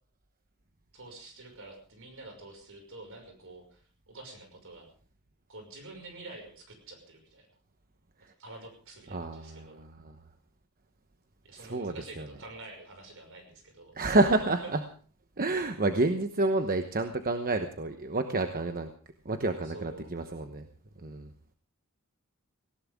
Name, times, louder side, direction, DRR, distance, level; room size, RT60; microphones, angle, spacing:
voice 1, 0.9-4.9 5.5-7.6 8.4-9.8 11.4-13.9 19.4-20.1, right 2 dB, 65° right, 4 dB, 5.9 m, -48 dB
voice 2, 9.1-10.1 11.5-12.3 13.9-14.8 15.4-18.9 19.2-20.7 21.0-21.3, right 2 dB, 40° right, 7 dB, 1.1 m, -29 dB
19.0 x 17.5 x 3.7 m, 0.42 s
head